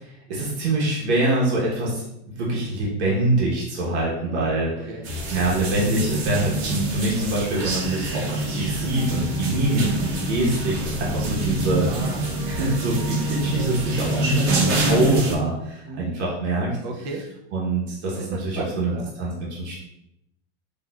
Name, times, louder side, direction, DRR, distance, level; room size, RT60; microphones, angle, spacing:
voice 1, 0.3-2.1 2.4-4.9 5.3-11.9 12.5-16.8 17.5-19.7, right 2 dB, 85° right, -4 dB, 1.0 m, -24 dB
voice 2, 4.3-5.1 11.8-12.4 14.0-14.2 15.8-16.1 16.8-17.3 18.1-19.1, right 3 dB, 35° right, 1 dB, 0.4 m, -36 dB
sound 1, 5.0-15.4, right 2 dB, 60° right, 0.8 m, -26 dB
4.2 x 2.5 x 2.2 m, 0.85 s
supercardioid pair, 165°, 33 cm